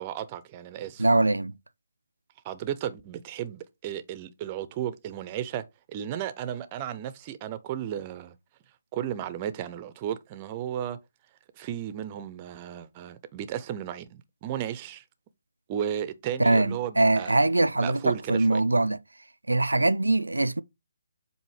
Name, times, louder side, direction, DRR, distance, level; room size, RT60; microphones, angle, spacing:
voice 1, 0.0-1.0 2.4-8.3 8.9-11.0 11.6-15.0 15.7-17.4 17.8-18.6 19.7-19.9, right 10 dB, 30° right, 0.6 m, -34 dB
voice 2, 1.0-1.5 16.4-19.0 19.5-20.6, right 2 dB, 85° right, 0.4 m, -22 dB
7.5 x 2.8 x 4.7 m
figure-of-eight pair, 145°, 0 cm